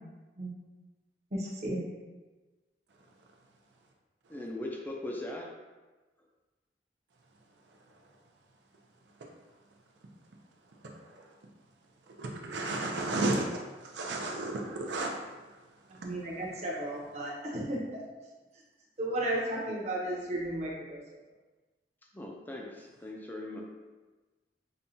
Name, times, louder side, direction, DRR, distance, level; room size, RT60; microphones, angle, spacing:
voice 1, 1.3-1.8 16.0-18.0 19.0-21.0, right 1 dB, 40° right, -4 dB, 0.8 m, -34 dB
voice 2, 4.3-5.5 22.1-23.6, left 1 dB, 10° left, -1 dB, 0.4 m, -39 dB
voice 3, 12.2-15.1, right 2 dB, 70° right, 1 dB, 0.6 m, -32 dB
5.3 x 2.3 x 2.7 m, 1.2 s
head